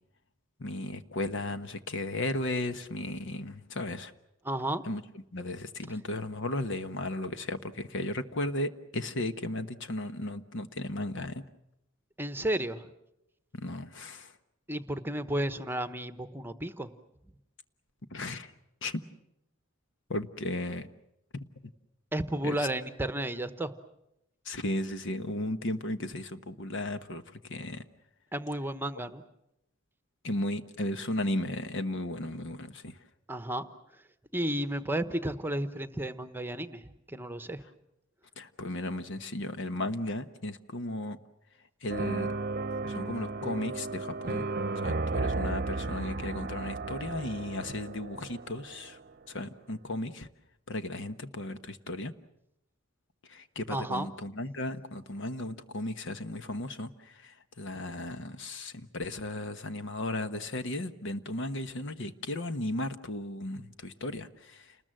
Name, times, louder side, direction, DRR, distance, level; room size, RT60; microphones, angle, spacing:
voice 1, 0.6-4.1 4.9-5.0 5.3-11.4 13.5-14.3 18.1-18.5 18.8-19.0 20.1-20.9 22.4-22.5 24.4-27.2 27.5-27.8 30.2-33.0 38.4-41.2 41.8-42.3 42.9-44.5 44.8-49.0 49.3-50.3 50.7-52.1 53.3-64.6, left 1 dB, 65° left, 10 dB, 1.2 m, -35 dB
voice 2, 4.4-4.8 12.2-12.9 14.7-16.9 22.1-23.7 28.3-29.2 33.3-33.6 33.9-34.0 34.3-37.6 53.7-54.1, right 1 dB, 10° right, 10 dB, 1.0 m, -33 dB
sound 1, 41.9-49.0, right 3 dB, 45° right, 0.9 m, -34 dB
29.5 x 20.5 x 7.7 m, 0.84 s
head